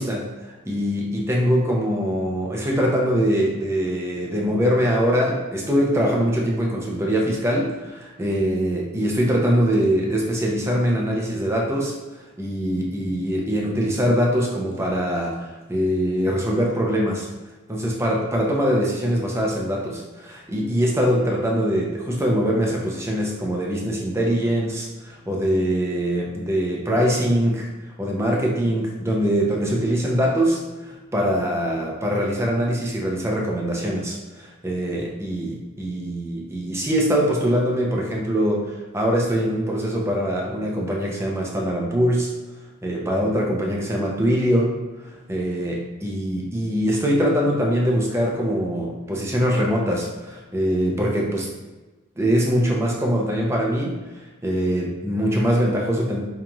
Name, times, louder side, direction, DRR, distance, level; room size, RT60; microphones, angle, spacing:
voice 1, 0.0-11.9 12.4-17.3 17.7-27.7 28.0-42.3 42.8-44.8 45.0-51.5 52.2-54.0 54.4-56.2, equal, 10° right, -2 dB, 0.5 m, -23 dB
5.0 x 2.9 x 2.3 m, 1.2 s
head